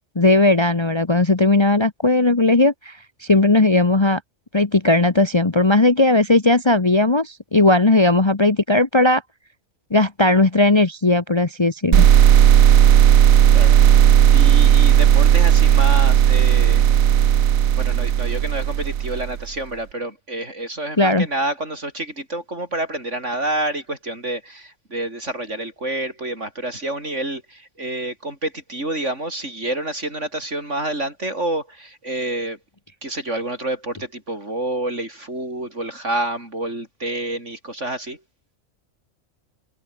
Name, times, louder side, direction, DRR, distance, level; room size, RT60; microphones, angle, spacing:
voice 1, 0.2-3.0 3.3-4.2 4.5-9.2 9.9-12.1 21.0-21.3, left 2 dB, 20° left, 1.1 m, -17 dB
sound 1, 11.9-19.4, right 10 dB, 85° right, 1.4 m, -14 dB
voice 2, 14.3-16.8 17.8-32.6 33.0-38.2, right 1 dB, 60° right, 7.3 m, -28 dB
omnidirectional pair, 1.4 m